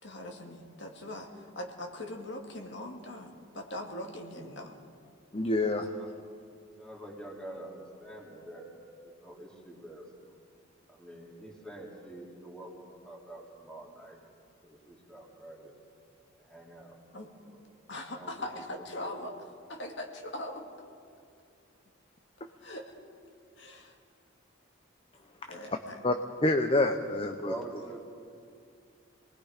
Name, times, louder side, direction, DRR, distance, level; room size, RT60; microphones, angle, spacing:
voice 1, 0.0-4.8 17.1-17.3 17.9-19.3 19.7-20.6 22.6-22.9 23.6-23.9 25.5-26.0, left 1 dB, 60° left, 2 dB, 2.3 m, -41 dB
voice 2, 5.3-5.9 25.5-25.6 26.0-26.1 26.4-27.5, left 2 dB, 25° left, 6 dB, 0.8 m, -27 dB
voice 3, 6.8-8.7 9.0-10.4 10.9-14.2 14.6-15.7 16.4-17.0 17.4-17.6 18.1-19.2 26.3-26.4 27.2-28.0, right 1 dB, 5° left, -2 dB, 3.0 m, -46 dB
27.5 x 19.5 x 5.1 m, 2.4 s
head